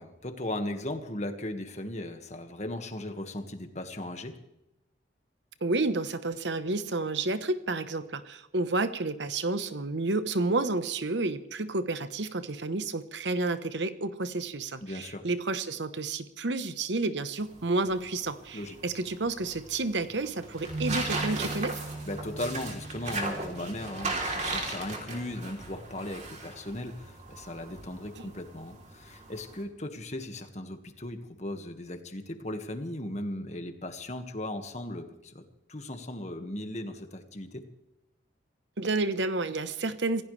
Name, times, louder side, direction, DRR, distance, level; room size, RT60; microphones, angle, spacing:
voice 1, 0.0-4.4 14.8-15.3 18.5-18.8 22.1-35.4 35.7-37.7, left 1 dB, 40° left, 6 dB, 1.8 m, -37 dB
voice 2, 5.6-21.8 28.2-28.3 38.8-40.2, right 3 dB, 85° right, 12 dB, 1.1 m, -30 dB
sound 1, 17.4-29.6, right 2 dB, 40° right, 3.5 m, -37 dB
sound 2, 20.7-27.7, right 3 dB, 60° right, 2.3 m, -41 dB
26.5 x 16.0 x 3.4 m, 0.93 s
head